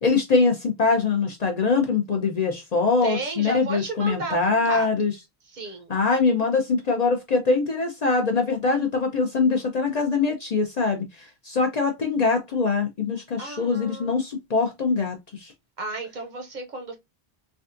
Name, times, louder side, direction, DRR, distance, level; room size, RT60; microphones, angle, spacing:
voice 1, 0.0-5.1 5.9-15.5, left 4 dB, 50° left, 0.5 m, -23 dB
voice 2, 3.0-4.9 5.5-5.9 13.4-14.1 15.8-17.0, right 3 dB, 55° right, 0.7 m, -33 dB
3.4 x 2.3 x 2.5 m
omnidirectional pair, 1.1 m